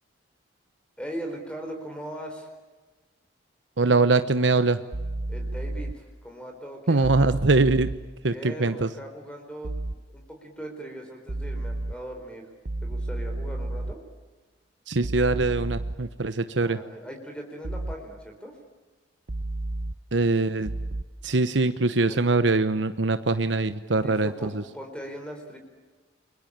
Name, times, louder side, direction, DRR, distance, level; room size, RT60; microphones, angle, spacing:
voice 1, 1.0-2.5 5.3-7.3 8.3-12.5 12.8-14.0 16.6-18.6 22.1-22.2 23.9-25.6, equal, 5° left, 3 dB, 4.5 m, -39 dB
voice 2, 3.8-4.8 6.9-7.9 8.2-8.9 14.9-16.8 20.1-20.7 21.2-24.6, right 3 dB, 75° right, 11 dB, 1.0 m, -23 dB
sound 1, 4.9-5.9 7.0-8.0 9.6-10.0 11.3-11.9 12.7-13.9 15.0-16.0 17.6-18.0 19.3-19.9 20.7-21.0, right 2 dB, 50° right, 0.9 m, -31 dB
30.0 x 22.5 x 8.9 m, 1.2 s
head